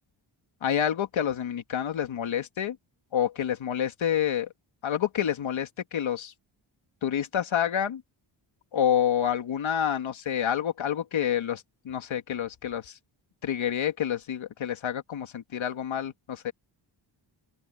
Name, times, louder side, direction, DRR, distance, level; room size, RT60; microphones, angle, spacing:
voice 1, 0.6-2.8 3.1-4.5 4.8-6.3 7.0-8.0 8.7-13.0 13.4-16.5, left 9 dB, 75° left, 2.2 m, -28 dB
open air
wide cardioid pair, 170°, 48 cm